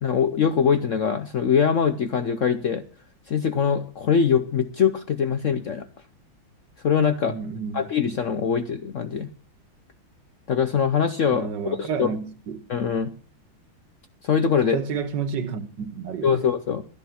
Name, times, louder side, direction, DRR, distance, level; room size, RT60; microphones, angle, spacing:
voice 1, 0.0-2.8 3.3-5.8 6.8-7.4 7.7-9.3 10.5-12.1 12.7-13.1 14.2-14.8 16.2-16.8, left 7 dB, 65° left, 0.7 m, -23 dB
voice 2, 7.2-7.9 11.3-12.6 14.7-16.4, right 6 dB, 60° right, 1.8 m, -30 dB
13.0 x 10.5 x 5.7 m
omnidirectional pair, 2.2 m